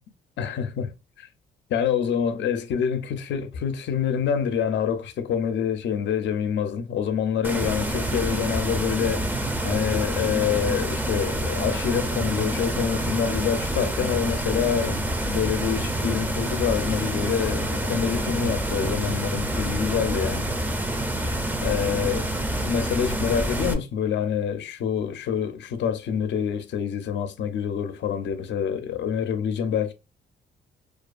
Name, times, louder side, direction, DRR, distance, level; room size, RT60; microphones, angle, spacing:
voice 1, 0.4-0.9 1.2-1.3 1.7-20.5 21.6-22.3 22.6-29.9, left 8 dB, 65° left, 0.5 m, -26 dB
sound 1, 7.4-23.7, right 1 dB, 10° right, 0.4 m, -27 dB
2.3 x 2.3 x 2.3 m
cardioid pair, 90°, 20 cm